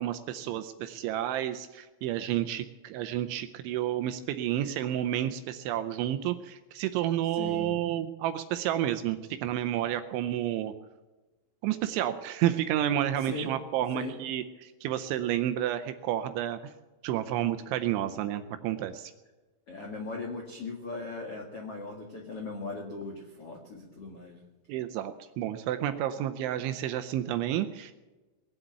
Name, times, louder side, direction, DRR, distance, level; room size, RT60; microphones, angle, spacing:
voice 1, 0.0-10.7 11.6-16.7 17.0-19.1 24.7-27.9, right 12 dB, 80° right, 9 dB, 2.8 m, -30 dB
voice 2, 7.3-7.7 13.2-13.5 13.9-14.1 19.7-24.4, left 3 dB, 80° left, 1 dB, 1.3 m, -38 dB
20.0 x 7.8 x 9.1 m, 1.2 s
omnidirectional pair, 5.9 m